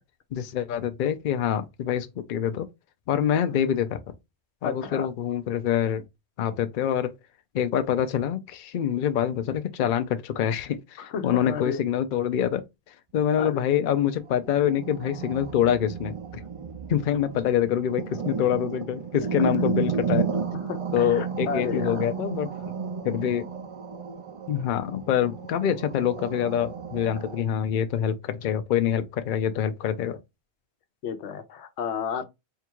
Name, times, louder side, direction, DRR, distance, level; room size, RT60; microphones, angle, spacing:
voice 1, 0.3-2.7 3.1-4.0 4.6-6.0 6.4-7.1 7.5-16.4 16.9-20.3 20.9-22.7 23.0-23.5 24.5-30.2, left 9 dB, 60° left, 0.6 m, -26 dB
voice 2, 4.6-5.1 11.0-11.8 13.4-13.6 19.4-19.5 20.6-22.1 31.0-32.2, left 6 dB, 80° left, 0.9 m, -32 dB
sound 1, 14.0-27.4, right 6 dB, 45° right, 0.4 m, -33 dB
3.7 x 2.3 x 4.4 m
omnidirectional pair, 1.1 m